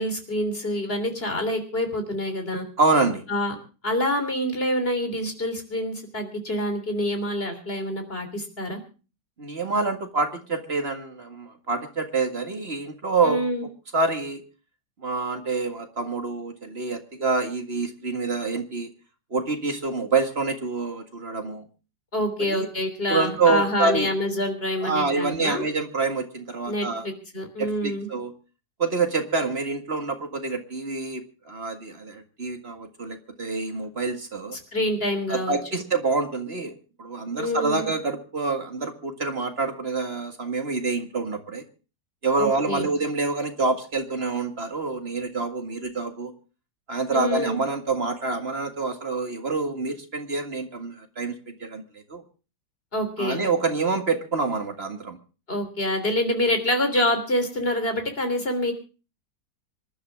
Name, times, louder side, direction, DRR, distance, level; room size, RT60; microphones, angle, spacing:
voice 1, 0.0-2.7 3.3-3.6 3.8-8.8 13.2-13.6 22.1-25.7 26.7-28.1 34.5-35.8 37.4-37.9 42.4-42.9 47.1-47.6 52.9-53.4 55.5-58.7, left 1 dB, 35° left, 6 dB, 3.6 m, -26 dB
voice 2, 2.8-3.2 9.4-13.4 13.9-14.4 15.0-18.9 19.3-21.7 22.5-22.7 23.1-24.1 24.8-27.1 27.6-28.3 28.8-31.2 31.5-34.6 35.3-36.7 37.0-41.6 42.2-46.3 46.9-51.8 52.1-52.2 53.2-55.2, right 3 dB, 40° right, 6 dB, 2.0 m, -26 dB
26.5 x 11.5 x 3.5 m, 0.35 s
omnidirectional pair, 1.8 m